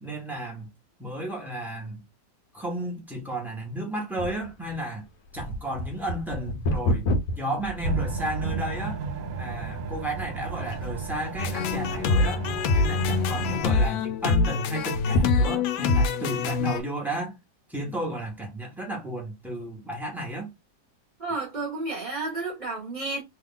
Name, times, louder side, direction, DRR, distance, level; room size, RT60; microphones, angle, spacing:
voice 1, 0.0-0.7 1.0-2.1 2.5-5.0 5.3-7.1 7.4-9.0 9.4-12.5 12.7-17.4 17.7-20.5, right 1 dB, ahead, 0.5 m, -33 dB
sound 1, 4.2-8.6 9.2-9.3 10.0-10.3 10.6-11.3 11.8-12.5 12.8-12.9 13.2-13.3 14.8-15.9 16.5-16.6, left 1 dB, 60° left, 1.0 m, -29 dB
sound 2, 7.8-13.6, right 4 dB, 75° right, 0.8 m, -33 dB
sound 3, 11.4-16.8, left 4 dB, 85° left, 1.3 m, -24 dB
voice 2, 21.2-23.2, right 3 dB, 35° right, 0.7 m, -31 dB
3.2 x 2.3 x 3.7 m
omnidirectional pair, 2.0 m